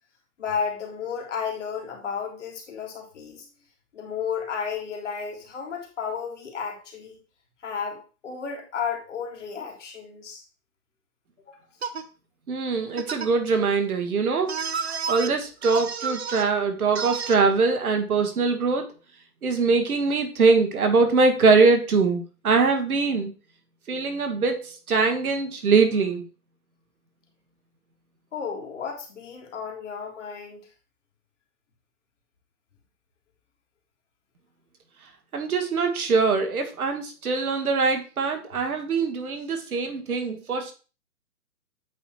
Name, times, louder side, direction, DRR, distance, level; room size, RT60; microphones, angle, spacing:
voice 1, 0.4-3.5 3.9-7.2 7.6-10.4 11.5-11.6 28.3-30.7, left 6 dB, 50° left, 1 dB, 1.8 m, -33 dB
sound 1, 11.8-12.0 13.0-13.3 14.5-15.3 15.6-16.5 16.9-17.4, right 6 dB, 45° right, 0.4 m, -30 dB
voice 2, 12.5-18.9 19.4-23.3 23.9-26.3 35.3-40.7, right 4 dB, 65° right, 6 dB, 1.6 m, -23 dB
8.2 x 3.1 x 4.1 m, 0.34 s
hypercardioid pair, 170°, 46 cm